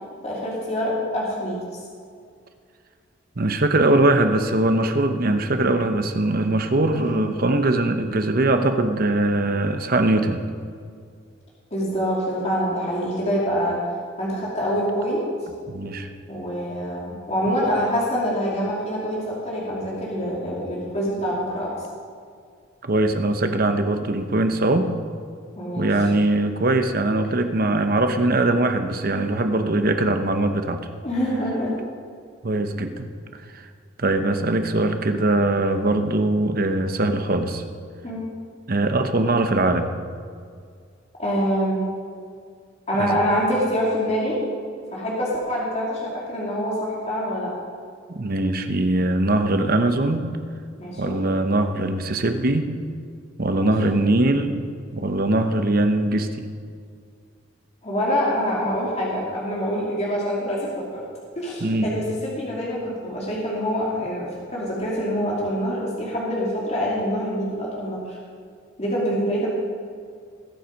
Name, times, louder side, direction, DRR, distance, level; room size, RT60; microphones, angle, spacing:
voice 1, 0.2-1.8 6.9-7.3 11.7-13.8 14.2-15.2 16.3-21.8 25.5-25.9 31.0-31.8 38.0-38.3 41.2-41.8 42.9-44.4 44.9-47.5 50.8-51.2 53.5-54.0 57.8-61.0 61.4-68.2 68.8-69.6, equal, 35° left, -6 dB, 2.8 m, -25 dB
voice 2, 3.4-10.4 15.7-16.1 22.8-24.9 25.8-30.9 32.4-33.7 34.0-37.6 38.7-39.9 43.0-43.2 48.1-50.3 51.0-52.7 53.4-54.6 54.9-56.5 61.6-61.9, right 2 dB, 50° right, 7 dB, 0.9 m, -21 dB
20.5 x 7.5 x 5.3 m, 2.2 s
head